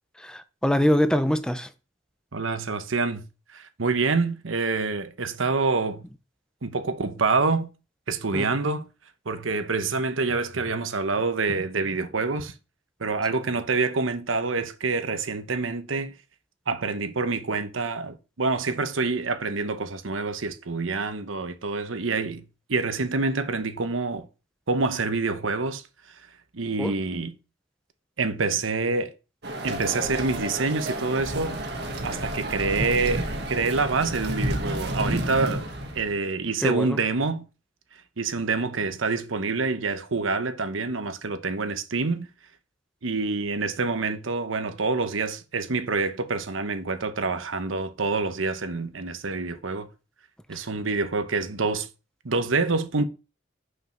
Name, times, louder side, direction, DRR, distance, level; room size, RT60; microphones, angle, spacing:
voice 1, 0.2-1.7 8.3-8.5 26.8-27.0 36.6-37.0, equal, 5° left, 0.5 m, -24 dB
voice 2, 2.3-3.3 3.5-6.0 6.6-7.7 8.1-8.9 9.2-12.5 13.0-16.1 16.7-24.3 24.7-25.8 26.5-27.4 28.2-29.1 29.6-31.6 32.0-35.7 35.9-37.5 38.2-42.3 43.0-49.9 50.5-51.9 52.2-53.1, right 3 dB, 90° right, 1.0 m, -27 dB
sound 1, 29.4-36.2, right 1 dB, 55° right, 1.4 m, -30 dB
6.3 x 5.1 x 5.8 m
head